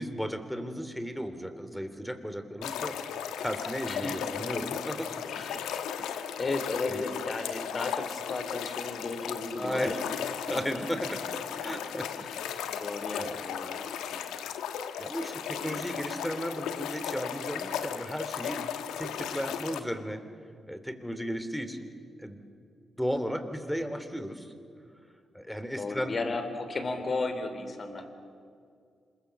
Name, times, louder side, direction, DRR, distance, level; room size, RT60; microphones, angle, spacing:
voice 1, 0.0-3.0 3.4-5.4 6.2-6.4 6.9-7.0 9.6-10.1 10.5-11.2 11.5-12.8 13.1-13.4 15.0-18.6 19.0-20.2 20.7-21.9 22.2-22.4 23.0-24.5 25.3-26.2, equal, 5° left, 9 dB, 3.2 m, -35 dB
sound 1, 2.6-19.8, left 9 dB, 80° left, 1.2 m, -36 dB
voice 2, 3.8-4.3 5.3-10.0 10.5-11.0 12.2-12.3 12.8-14.2 15.6-15.9 25.8-28.1, left 3 dB, 45° left, 8 dB, 3.6 m, -35 dB
26.5 x 22.5 x 7.2 m, 2.3 s
hypercardioid pair, 40°, 0 cm